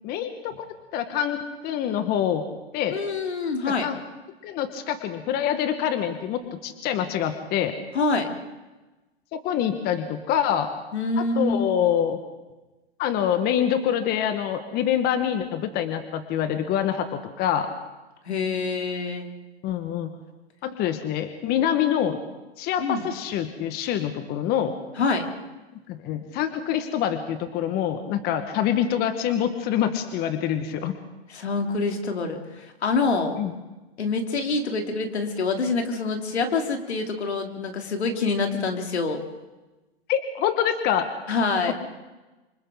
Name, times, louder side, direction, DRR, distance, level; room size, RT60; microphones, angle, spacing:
voice 1, 0.0-0.7 0.9-2.5 2.7-3.0 3.6-4.0 4.4-7.7 9.3-10.7 11.2-12.2 13.0-17.7 19.6-20.1 20.6-22.2 22.6-24.7 25.7-31.0 33.4-33.5 40.1-41.1 41.7-41.8, left 9 dB, 30° left, 8 dB, 1.5 m, -25 dB
voice 2, 2.9-3.9 7.9-8.3 10.9-11.7 18.2-19.3 22.8-23.0 25.0-25.3 31.3-33.3 34.0-39.2 41.3-41.7, left 4 dB, 80° left, 3 dB, 3.1 m, -26 dB
26.5 x 25.5 x 3.9 m, 1.1 s
hypercardioid pair, 130°, 32 cm